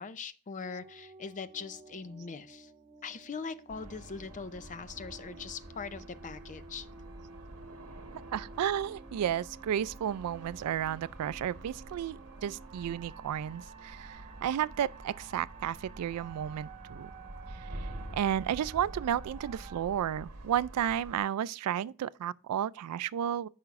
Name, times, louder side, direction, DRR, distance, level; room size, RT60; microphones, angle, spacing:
voice 1, 0.0-2.7 3.0-6.9, left 5 dB, 35° left, 0.5 m, -41 dB
sound 1, 0.6-19.8, right 5 dB, 25° right, 0.5 m, -53 dB
sound 2, 3.7-21.2, right 1 dB, 70° right, 1.3 m, -47 dB
voice 2, 8.3-17.1 17.8-23.5, right 10 dB, 85° right, 0.3 m, -32 dB
9.7 x 5.8 x 2.4 m
head